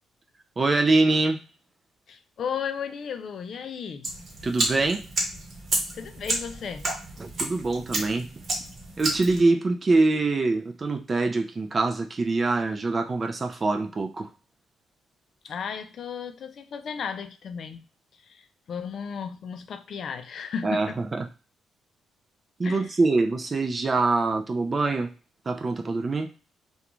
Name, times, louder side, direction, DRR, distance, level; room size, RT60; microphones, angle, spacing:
voice 1, 0.6-1.4 4.4-5.0 7.2-8.3 9.0-14.3 20.6-21.3 22.6-25.1 25.5-26.3, right 3 dB, 35° right, 5 dB, 0.4 m, -24 dB
voice 2, 2.1-4.1 5.9-6.9 15.4-17.8 18.1-21.0 22.6-22.9, left 7 dB, 60° left, 8 dB, 0.3 m, -35 dB
sound 1, 4.0-9.4, right 2 dB, 50° right, 0.9 m, -31 dB
2.5 x 2.2 x 2.9 m, 0.34 s
cardioid pair, 90°, 0 cm